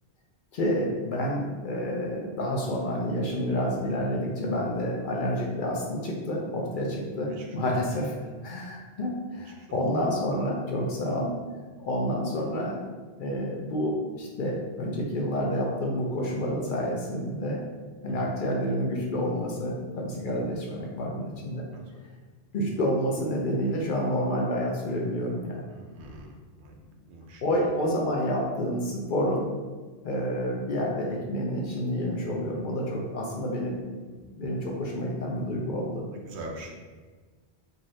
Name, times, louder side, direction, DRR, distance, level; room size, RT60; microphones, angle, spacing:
voice 1, 0.5-8.1 8.4-11.4 11.8-12.8 13.2-17.6 18.0-21.6 22.5-25.6 27.4-29.5 30.0-36.0, equal, 60° left, -1 dB, 0.6 m, -29 dB
voice 2, 9.3-9.8 18.1-18.3 21.7-21.8 25.7-26.3 26.6-26.8 27.1-27.4 36.1-36.8, right 1 dB, 85° right, 2 dB, 0.9 m, -43 dB
2.7 x 2.6 x 3.1 m, 1.4 s
omnidirectional pair, 1.1 m